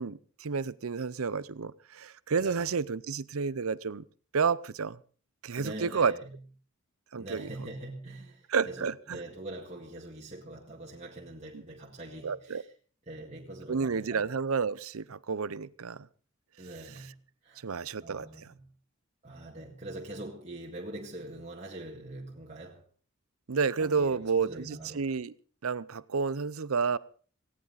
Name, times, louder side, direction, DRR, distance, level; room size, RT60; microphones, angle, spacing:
voice 1, 0.0-4.0 4.3-5.0 5.4-6.1 7.1-7.5 8.5-9.2 11.5-11.6 12.2-12.6 13.7-16.1 16.9-17.1 17.6-18.5 23.5-25.3 25.6-27.0, right 5 dB, 75° right, 0.6 m, -30 dB
voice 2, 5.6-6.4 7.2-12.7 13.1-14.3 16.6-17.2 17.4-17.7 18.0-18.7 19.2-22.8 23.8-25.1, right 1 dB, 30° right, 2.0 m, -43 dB
18.0 x 17.0 x 4.1 m
head